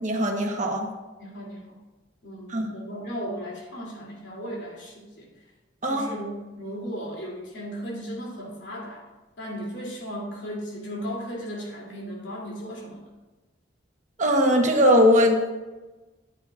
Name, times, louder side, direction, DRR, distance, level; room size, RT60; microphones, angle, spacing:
voice 1, 0.0-0.9 2.5-2.7 5.8-6.1 14.2-15.5, equal, 40° right, 3 dB, 1.1 m, -20 dB
voice 2, 1.2-1.6 2.2-5.3 5.8-9.0 9.4-13.0, equal, 80° left, -2 dB, 2.8 m, -36 dB
13.5 x 9.1 x 2.5 m, 1.2 s
head